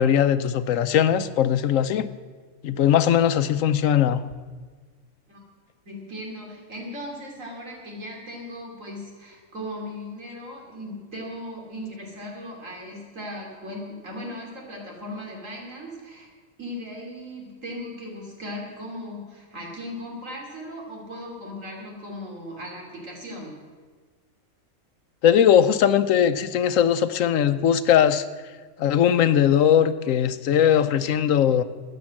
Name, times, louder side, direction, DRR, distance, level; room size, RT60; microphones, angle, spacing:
voice 1, 0.0-2.1 2.6-4.2 25.2-28.2 28.8-31.6, left 9 dB, 80° left, 13 dB, 1.1 m, -20 dB
voice 2, 5.9-16.3 16.6-23.6, left 1 dB, 80° right, -1 dB, 3.4 m, -37 dB
13.0 x 9.5 x 7.6 m, 1.5 s
omnidirectional pair, 1.3 m